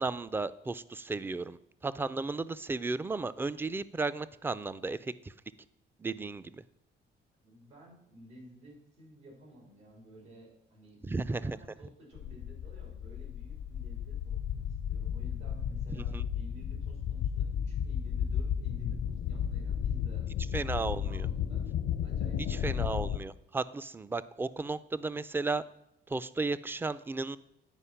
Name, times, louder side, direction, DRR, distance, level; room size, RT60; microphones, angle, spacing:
voice 1, 0.0-1.6 1.8-5.1 6.0-6.6 11.1-11.6 15.9-16.2 20.5-21.3 22.5-25.6 26.1-27.4, right 3 dB, 10° right, 15 dB, 0.3 m, -34 dB
voice 2, 7.4-11.0 11.4-20.3 20.9-21.7 22.0-22.8, equal, 85° right, 0 dB, 3.5 m, -54 dB
sound 1, 12.1-23.2, left 8 dB, 75° left, 0.7 m, -33 dB
9.9 x 4.8 x 5.7 m, 0.79 s
cardioid pair, 90°, 20 cm